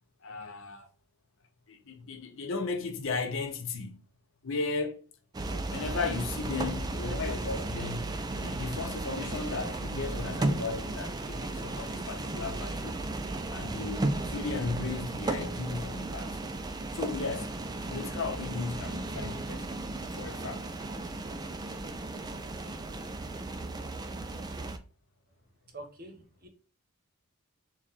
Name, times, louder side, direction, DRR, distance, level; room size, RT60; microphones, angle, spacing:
voice 1, 0.2-0.9 1.7-4.0 4.4-5.0 5.4-8.1 8.4-13.0 13.5-16.4 16.9-17.5 17.9-20.6, left 4 dB, 60° left, 0.7 m, -36 dB
sound 1, 5.3-24.8, right 2 dB, 20° right, 0.3 m, -35 dB
voice 2, 25.7-26.5, right 1 dB, 45° right, 0.9 m, -46 dB
4.2 x 2.4 x 4.0 m
head